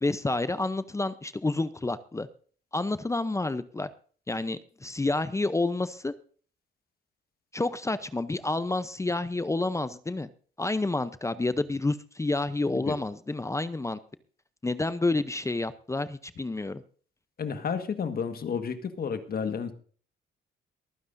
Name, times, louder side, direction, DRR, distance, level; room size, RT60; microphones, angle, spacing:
voice 1, 0.0-2.3 2.7-3.9 4.3-6.1 7.5-10.3 10.6-14.0 14.6-16.8, left 2 dB, 15° left, 14 dB, 0.6 m, -29 dB
voice 2, 17.4-19.7, left 6 dB, 50° left, 9 dB, 1.6 m, -31 dB
23.5 x 9.5 x 2.6 m, 0.44 s
cardioid pair, 90°, 20 cm